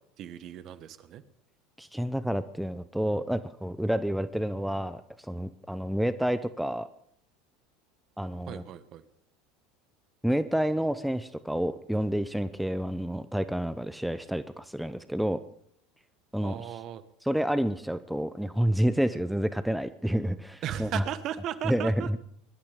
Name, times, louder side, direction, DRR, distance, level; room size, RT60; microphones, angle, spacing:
voice 1, 0.2-1.2 8.5-9.0 16.4-17.0 20.6-22.1, right 10 dB, 45° right, 14 dB, 1.3 m, -36 dB
voice 2, 1.8-6.9 8.2-8.6 10.2-15.4 16.3-16.8 17.2-21.0 21.6-22.3, equal, ahead, 13 dB, 0.8 m, -29 dB
23.0 x 12.0 x 5.0 m, 0.67 s
figure-of-eight pair, 75°, 0 cm